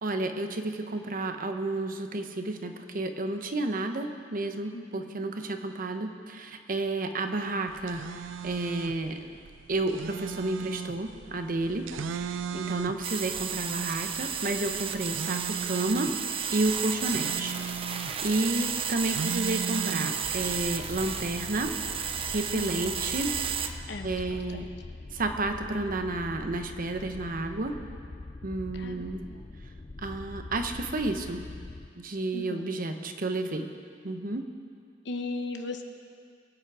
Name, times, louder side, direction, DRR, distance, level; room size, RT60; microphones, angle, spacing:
voice 1, 0.0-9.3 9.7-11.9 12.1-17.6 17.9-21.7 22.3-23.3 23.7-23.8 24.0-24.7 25.1-27.7 28.4-29.2 30.0-31.4 32.0-33.7 34.0-34.4, right 2 dB, 50° right, 6 dB, 0.9 m, -31 dB
voice 2, 4.7-5.3 22.5-22.8 23.9-24.4 28.7-29.4 32.3-32.6 35.0-35.8, left 2 dB, 70° left, 5 dB, 1.1 m, -38 dB
sound 1, 7.7-20.7, right 6 dB, 85° right, 0.4 m, -39 dB
sound 2, 13.0-23.7, right 7 dB, 30° right, 0.7 m, -33 dB
sound 3, 20.2-31.9, left 2 dB, 30° left, 0.4 m, -43 dB
22.5 x 8.7 x 4.8 m, 2.2 s
head